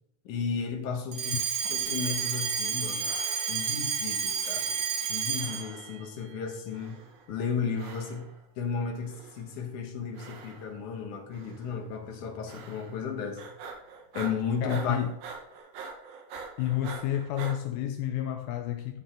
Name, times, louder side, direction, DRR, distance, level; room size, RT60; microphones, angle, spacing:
voice 1, 0.3-3.1 3.5-4.7 5.1-7.0 7.3-8.3 8.6-13.4 14.1-15.0, left 6 dB, 65° left, 2.8 m, -34 dB
Alarm, 1.1-5.8, right 6 dB, 50° right, 1.4 m, -30 dB
sound 1, 2.0-2.7 3.0-3.8 4.4-5.1 5.4-6.1 6.7-7.3 7.7-8.4 9.0-9.6 10.1-10.9 11.3-11.8 12.5-13.1 13.4-17.6, right 5 dB, 75° right, 3.1 m, -45 dB
voice 2, 14.6-15.1 16.6-19.0, left 12 dB, 85° left, 2.4 m, -30 dB
12.0 x 6.8 x 3.8 m
omnidirectional pair, 4.1 m